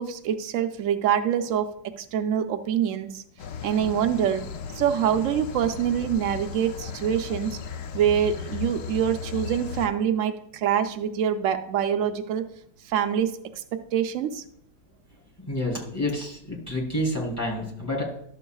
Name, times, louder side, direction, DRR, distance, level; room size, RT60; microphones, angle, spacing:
voice 1, 0.0-3.2 3.6-4.5 4.7-7.6 7.9-12.4 12.9-13.4 13.7-14.4, right 9 dB, 85° right, 7 dB, 0.7 m, -25 dB
sound 1, 3.4-9.9, left 6 dB, 75° left, 0.7 m, -36 dB
voice 2, 15.5-18.0, left 1 dB, 10° left, -2 dB, 3.1 m, -29 dB
12.0 x 7.1 x 2.3 m, 0.72 s
omnidirectional pair, 2.0 m